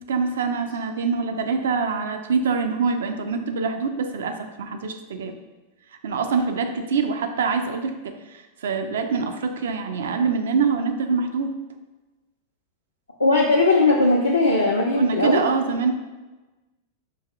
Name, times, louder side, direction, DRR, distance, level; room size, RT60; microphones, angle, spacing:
voice 1, 0.1-5.3 6.0-8.1 8.6-11.5 15.0-15.9, right 5 dB, 60° right, 6 dB, 0.3 m, -24 dB
voice 2, 13.2-15.4, left 2 dB, 80° left, -3 dB, 0.4 m, -19 dB
4.6 x 2.8 x 2.3 m, 1.2 s
figure-of-eight pair, 90°, 0 cm